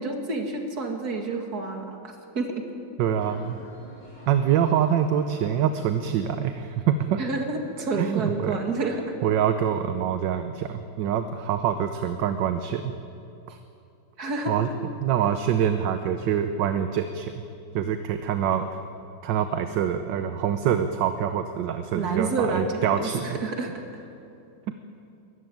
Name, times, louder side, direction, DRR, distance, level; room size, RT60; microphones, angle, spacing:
voice 1, 0.0-2.7 7.2-9.1 14.2-14.5 21.9-23.8, right 3 dB, 50° right, 3 dB, 2.6 m, -29 dB
voice 2, 3.0-3.6 4.3-7.2 8.0-8.6 9.2-12.9 13.5-13.6 14.5-14.7 15.0-17.3 17.7-18.7 19.2-23.4, right 9 dB, 70° right, 8 dB, 1.4 m, -25 dB
sound 1, 3.1-9.2, left 1 dB, 35° left, 7.3 m, -49 dB
22.5 x 14.5 x 9.3 m, 2.7 s
omnidirectional pair, 2.2 m